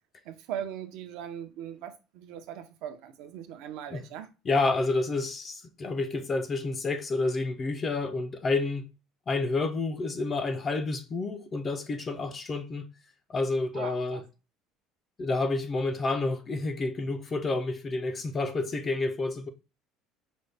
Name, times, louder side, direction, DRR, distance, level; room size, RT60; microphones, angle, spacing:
voice 1, 0.2-4.3 13.7-14.2, right 9 dB, 60° right, 0.6 m, -39 dB
voice 2, 4.5-8.9 9.3-12.9 13.3-14.2 15.2-19.5, left 3 dB, 20° left, 0.4 m, -29 dB
5.2 x 2.1 x 3.3 m
cardioid pair, 175°, 0 cm